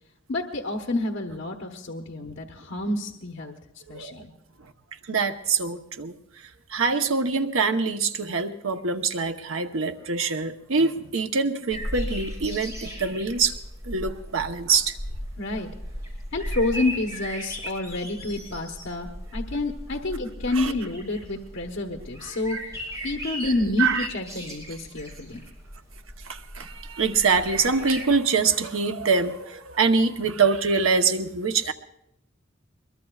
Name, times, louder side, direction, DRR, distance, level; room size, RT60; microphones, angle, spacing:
voice 1, 0.3-3.6 3.9-4.3 15.4-15.7 16.3-22.6 23.0-25.4, left 2 dB, 75° left, 2 dB, 1.2 m, -29 dB
voice 2, 5.1-6.1 6.7-13.6 13.8-15.0 20.6-20.7 22.5-22.6 23.4-23.5 23.8-24.1 26.3-31.7, right 5 dB, 85° right, 7 dB, 1.0 m, -24 dB
sound 1, 11.7-28.1, equal, 15° right, 5.0 m, -37 dB
22.5 x 22.0 x 2.4 m, 0.82 s
head